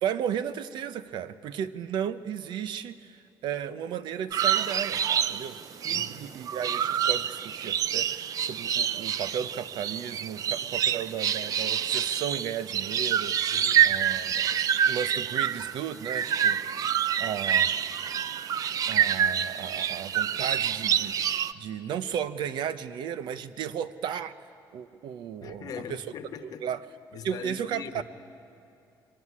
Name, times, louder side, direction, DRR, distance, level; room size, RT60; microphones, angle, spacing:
voice 1, 0.0-5.0 5.3-5.6 5.8-17.7 18.9-24.3 24.7-26.0 26.6-26.8 27.2-28.0, right 9 dB, 75° right, 13 dB, 0.9 m, -34 dB
sound 1, 4.3-21.5, right 9 dB, 50° right, 0.5 m, -27 dB
voice 2, 5.9-6.3 13.5-13.9 25.4-26.7 27.1-28.0, left 7 dB, 55° left, 8 dB, 1.1 m, -41 dB
23.0 x 19.0 x 9.7 m, 2.7 s
cardioid pair, 160°, 8 cm